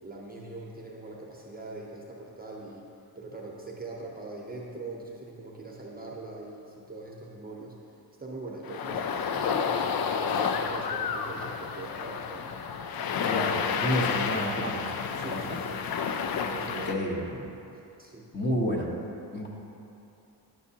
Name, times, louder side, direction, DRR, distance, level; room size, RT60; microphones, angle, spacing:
voice 1, 0.0-2.9 3.1-7.8 8.2-12.6 15.2-15.8 16.4-17.1 18.0-18.3, right 2 dB, 20° right, -2 dB, 0.8 m, -42 dB
sound 1, 8.7-16.9, left 6 dB, 60° left, 0.5 m, -30 dB
voice 2, 13.2-14.9 15.3-15.5 16.6-17.5 18.3-18.9 19.3-19.5, equal, 25° left, -2 dB, 1.2 m, -30 dB
10.5 x 6.1 x 2.8 m, 2.8 s
cardioid pair, 90°, 42 cm